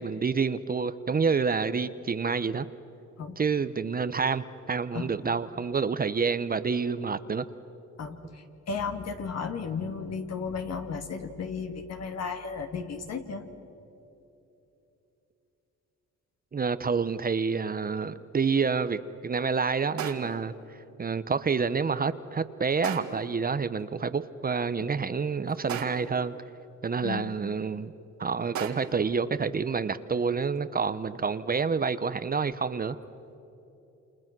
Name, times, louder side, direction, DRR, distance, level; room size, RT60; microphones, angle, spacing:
voice 1, 0.0-2.7 3.4-7.4 16.5-20.5 21.0-26.3 26.8-27.9 28.2-33.0, right 5 dB, 30° right, 13 dB, 0.9 m, -28 dB
voice 2, 8.0-13.4 27.0-27.3, left 5 dB, 60° left, 5 dB, 2.5 m, -34 dB
sound 1, 20.0-20.5 22.8-23.3 25.7-26.2 28.5-29.1, right 8 dB, 75° right, 2.1 m, -36 dB
29.0 x 27.5 x 6.1 m, 3.0 s
cardioid pair, 90°, 30 cm